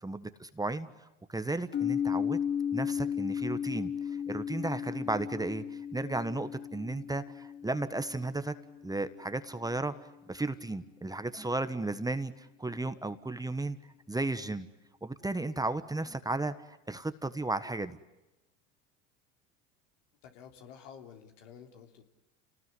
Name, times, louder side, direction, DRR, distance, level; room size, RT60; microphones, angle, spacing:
voice 1, 0.0-2.4 2.7-8.5 8.8-13.8 14.1-14.7 15.0-18.0, right 2 dB, 10° right, 11 dB, 1.4 m, -34 dB
sound 1, 1.7-9.5, left 8 dB, 25° left, 1.8 m, -35 dB
voice 2, 20.2-22.0, left 7 dB, 70° left, 4 dB, 3.5 m, -51 dB
29.5 x 19.5 x 9.8 m, 0.98 s
hypercardioid pair, 85°, 38 cm